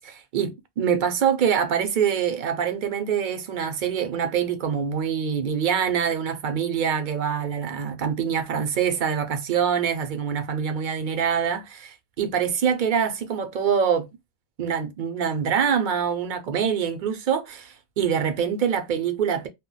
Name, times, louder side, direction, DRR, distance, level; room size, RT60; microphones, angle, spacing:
voice 1, 0.0-14.1 14.6-19.5, right 7 dB, 60° right, 0.6 m, -25 dB
2.1 x 2.1 x 3.7 m
omnidirectional pair, 1.0 m